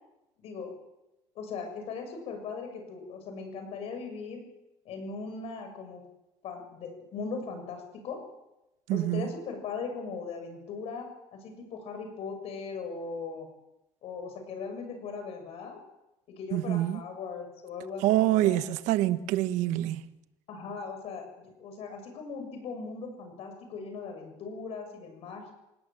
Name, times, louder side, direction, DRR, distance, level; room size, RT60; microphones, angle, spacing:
voice 1, 0.4-0.7 1.4-4.4 4.9-6.0 6.4-8.2 8.9-11.1 11.3-13.5 14.0-15.8 16.3-18.6 20.5-25.5, left 5 dB, 60° left, 6.9 m, -39 dB
voice 2, 8.9-9.3 16.5-17.0 18.0-20.0, right 14 dB, 85° right, 1.2 m, -26 dB
27.0 x 18.5 x 7.6 m
cardioid pair, 145°, 12 cm